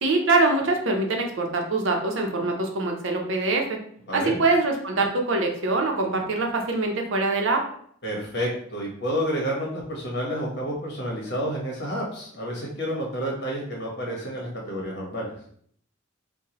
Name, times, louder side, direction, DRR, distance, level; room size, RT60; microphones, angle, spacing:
voice 1, 0.0-3.8 4.1-7.6, right 3 dB, 70° right, 2 dB, 0.7 m, -24 dB
voice 2, 4.1-4.4 8.0-15.3, equal, 55° left, -2 dB, 1.2 m, -30 dB
4.6 x 2.2 x 2.9 m, 0.62 s
head